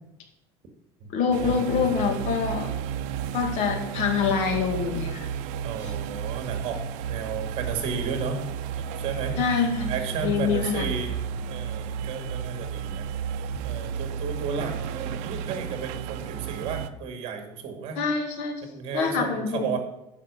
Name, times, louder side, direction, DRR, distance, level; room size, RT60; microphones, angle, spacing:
voice 1, 1.1-2.7 3.3-5.3 5.8-5.9 9.4-9.9 10.2-10.9 18.0-18.6 18.9-19.8, left 6 dB, 65° left, 5 dB, 2.1 m, -25 dB
sound 1, 1.3-16.9, right 7 dB, 80° right, 0.7 m, -32 dB
voice 2, 5.6-6.8 7.1-8.4 8.9-11.2 11.5-18.0 18.6-19.8, right 6 dB, 55° right, 5 dB, 2.2 m, -33 dB
10.0 x 5.8 x 6.7 m, 0.89 s
cardioid pair, 155°, 12 cm